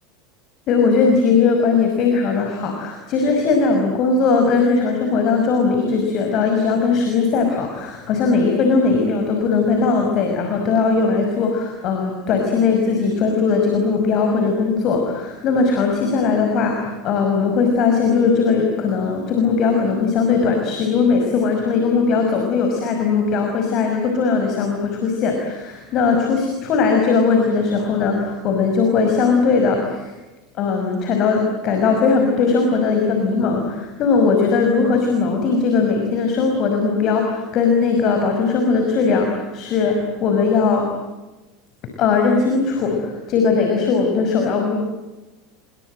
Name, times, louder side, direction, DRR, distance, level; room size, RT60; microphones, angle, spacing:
voice 1, 0.7-30.1 30.6-40.9 42.0-44.8, left 4 dB, 45° left, 3 dB, 5.6 m, -19 dB
29.0 x 24.5 x 7.9 m, 1.1 s
figure-of-eight pair, 80°, 0 cm